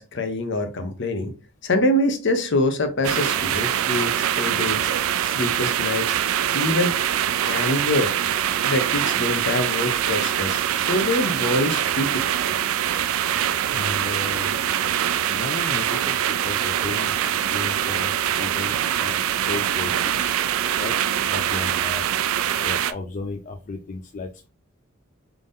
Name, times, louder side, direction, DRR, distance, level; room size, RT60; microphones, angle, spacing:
voice 1, 0.0-1.3 1.6-4.9 5.2-6.2 6.5-7.0 7.5-8.1 8.6-12.3, left 1 dB, 60° left, 7 dB, 0.7 m, -25 dB
sound 1, 3.0-22.9, right 10 dB, 80° right, 0.3 m, -24 dB
voice 2, 13.7-14.6 15.3-20.2 20.8-21.0 21.3-22.1 22.6-24.5, left 3 dB, 40° left, 3 dB, 0.3 m, -34 dB
3.6 x 3.4 x 2.6 m, 0.32 s
head